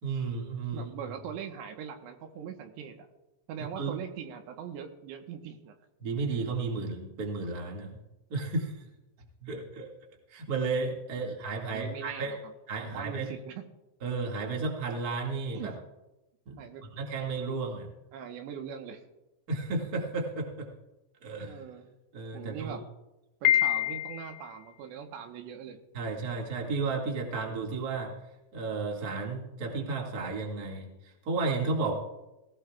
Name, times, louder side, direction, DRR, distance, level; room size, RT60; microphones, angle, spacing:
voice 1, 0.0-1.1 3.7-3.9 6.0-8.0 8.3-8.8 9.4-9.9 10.3-12.4 12.7-13.3 14.0-15.7 16.4-16.6 17.0-17.9 19.5-20.7 21.2-21.6 22.1-22.8 25.9-28.1 28.5-31.9, right 3 dB, 40° right, -1 dB, 1.4 m, -33 dB
voice 2, 0.7-3.1 3.5-5.7 11.2-11.3 11.6-12.5 12.8-13.6 15.5-15.7 16.6-16.8 18.1-19.0 21.5-21.9 22.3-22.8 23.4-25.8, right 8 dB, 85° right, 5 dB, 3.2 m, -41 dB
Piano, 23.5-24.5, left 11 dB, 80° left, 2.9 m, -26 dB
18.0 x 17.5 x 2.4 m, 0.99 s
omnidirectional pair, 4.9 m